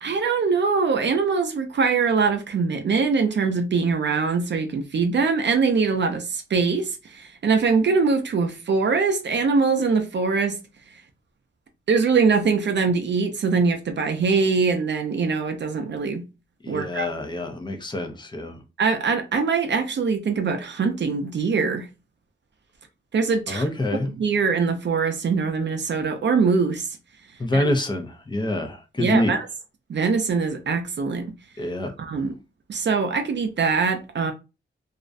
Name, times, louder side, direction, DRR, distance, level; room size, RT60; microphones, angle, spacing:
voice 1, 0.0-10.6 11.9-16.2 16.7-17.1 18.8-21.9 23.1-23.6 24.2-26.9 27.5-27.6 29.0-29.5 29.9-31.3 32.0-32.3 32.7-34.3, right 5 dB, 60° right, 0.4 m, -22 dB
voice 2, 16.6-18.6 23.5-24.1 27.4-29.3 31.6-31.9, left 1 dB, 20° left, 0.4 m, -26 dB
2.4 x 2.1 x 2.5 m
wide cardioid pair, 150°, 21 cm